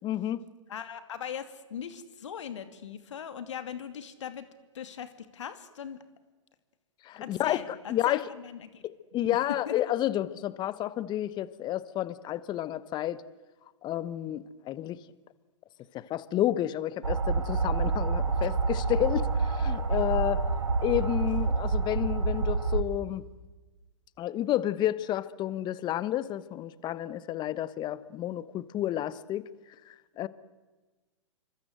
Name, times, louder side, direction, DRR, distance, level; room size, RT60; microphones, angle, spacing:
voice 1, 0.0-0.4 7.0-7.6 7.9-8.2 8.8-13.2 13.8-15.0 15.9-20.4 20.8-23.2 24.2-29.5 29.9-30.3, left 13 dB, 25° left, 17 dB, 1.2 m, -30 dB
voice 2, 0.7-4.5 4.7-6.0 7.2-8.8 9.7-9.8, left 8 dB, 65° left, 10 dB, 2.5 m, -40 dB
sound 1, 17.0-22.8, right 4 dB, 85° right, 2.6 m, -28 dB
28.0 x 25.0 x 8.0 m, 1.3 s
hypercardioid pair, 115°, 16 cm